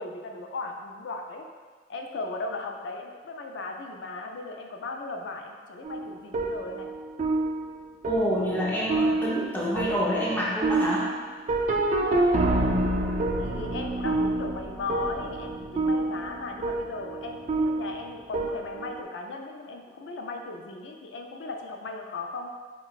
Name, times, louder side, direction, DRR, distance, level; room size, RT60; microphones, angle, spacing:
voice 1, 0.0-1.5 1.9-6.9 13.4-22.5, left 3 dB, 85° left, 3 dB, 0.4 m, -37 dB
sound 1, 5.8-19.0, right 2 dB, 40° right, 0.3 m, -28 dB
voice 2, 8.1-11.1, equal, 10° left, -6 dB, 0.6 m, -27 dB
5.5 x 2.2 x 2.3 m, 1.5 s
head